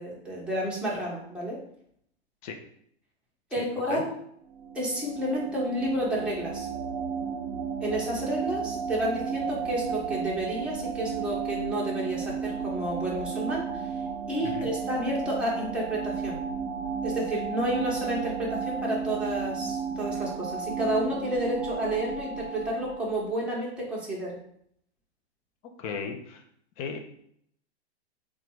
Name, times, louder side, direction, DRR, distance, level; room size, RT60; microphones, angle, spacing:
voice 1, 0.0-1.6 3.5-4.1 4.7-6.7 7.8-13.9 14.3-16.4 17.0-24.4, right 1 dB, 5° right, -5 dB, 1.0 m, -30 dB
voice 2, 3.6-4.0 14.4-14.7 25.8-26.4 26.8-27.0, left 5 dB, 35° left, 4 dB, 0.6 m, -36 dB
sound 1, 4.5-23.4, right 6 dB, 50° right, 0.5 m, -33 dB
3.7 x 2.4 x 4.5 m, 0.69 s
hypercardioid pair, 130°, 34 cm